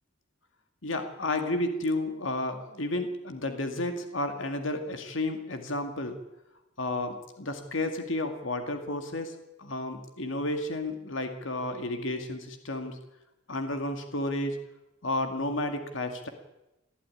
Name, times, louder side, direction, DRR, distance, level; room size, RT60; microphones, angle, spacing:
voice 1, 0.8-6.2 6.8-9.3 9.6-13.0 13.5-14.6 15.0-16.3, left 2 dB, 75° left, 6 dB, 2.1 m, -32 dB
21.0 x 13.0 x 9.7 m, 0.95 s
head